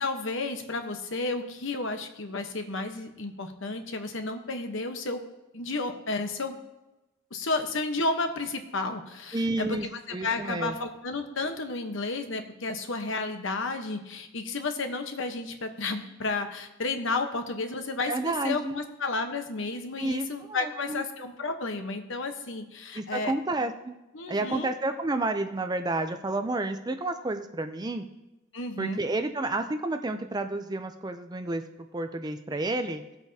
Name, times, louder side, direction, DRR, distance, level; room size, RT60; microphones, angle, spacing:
voice 1, 0.0-5.2 5.5-6.6 7.3-9.8 10.1-23.3 24.1-24.7 28.5-29.0, left 3 dB, 60° left, 6 dB, 1.0 m, -32 dB
voice 2, 9.3-9.9 10.1-10.7 18.1-18.8 20.0-21.0 22.9-23.9 24.3-28.1 28.8-31.6 31.9-33.0, right 2 dB, 20° right, 8 dB, 0.4 m, -30 dB
17.0 x 8.1 x 2.8 m, 1.0 s
head